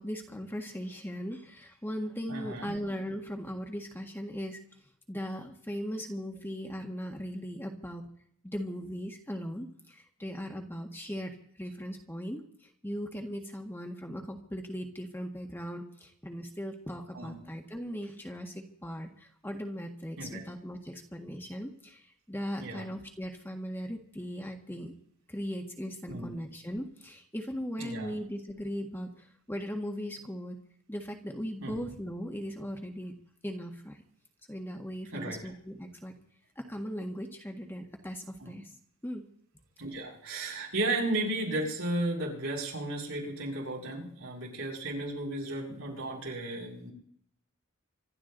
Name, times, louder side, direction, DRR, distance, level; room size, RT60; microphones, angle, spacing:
voice 1, 0.0-4.6 5.1-8.0 8.4-11.3 11.6-24.9 25.3-30.6 30.9-33.1 33.4-34.0 34.5-36.1 36.5-38.7 39.0-39.2, equal, 10° left, 3 dB, 1.6 m, -38 dB
voice 2, 2.3-2.7 17.1-17.4 20.2-20.4 22.6-22.8 26.1-26.3 27.8-28.1 31.6-31.8 35.1-35.4 38.4-38.5 39.8-46.9, right 2 dB, 65° right, -1 dB, 7.3 m, -34 dB
26.0 x 13.0 x 4.0 m, 0.63 s
head